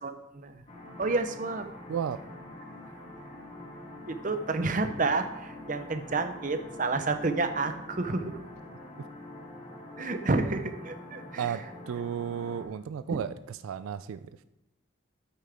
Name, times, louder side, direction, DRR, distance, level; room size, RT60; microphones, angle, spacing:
voice 1, 0.0-0.6 1.0-1.7 4.0-8.4 10.0-11.6 13.1-13.2, right 3 dB, 40° right, 8 dB, 0.7 m, -30 dB
sound 1, 0.7-12.6, left 1 dB, 30° left, 1.7 m, -45 dB
voice 2, 1.9-2.2 11.4-14.3, right 8 dB, 90° right, 13 dB, 0.3 m, -34 dB
9.3 x 8.5 x 3.5 m, 0.91 s
head